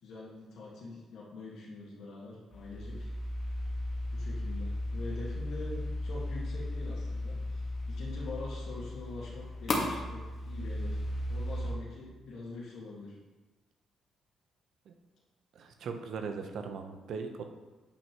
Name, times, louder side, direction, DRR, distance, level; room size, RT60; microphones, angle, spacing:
voice 1, 0.0-3.1 4.1-11.0 11.3-13.2, left 2 dB, 75° left, -5 dB, 1.7 m, -44 dB
sound 1, 2.5-11.7, left 1 dB, 50° left, 1.5 m, -35 dB
voice 2, 15.5-17.4, right 5 dB, 70° right, 5 dB, 0.8 m, -39 dB
8.4 x 5.7 x 3.0 m, 1.2 s
cardioid pair, 80°, 0 cm